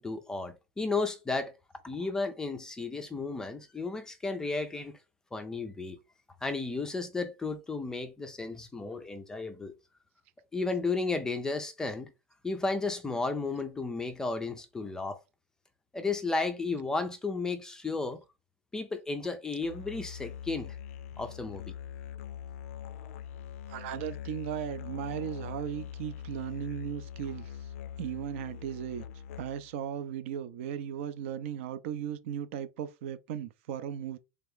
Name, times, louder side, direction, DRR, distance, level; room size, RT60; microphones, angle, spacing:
voice 1, 0.0-1.5 1.8-5.0 5.3-6.0 6.4-9.7 10.5-12.1 12.4-15.2 15.9-18.2 18.7-20.7 21.2-21.6, left 3 dB, 10° left, 0.4 m, -33 dB
Musical instrument, 19.6-29.8, left 9 dB, 75° left, 0.4 m, -43 dB
voice 2, 23.7-27.7 28.0-29.1 29.4-34.2, right 9 dB, 60° right, 0.5 m, -37 dB
3.4 x 2.9 x 3.6 m
supercardioid pair, 160°, 8 cm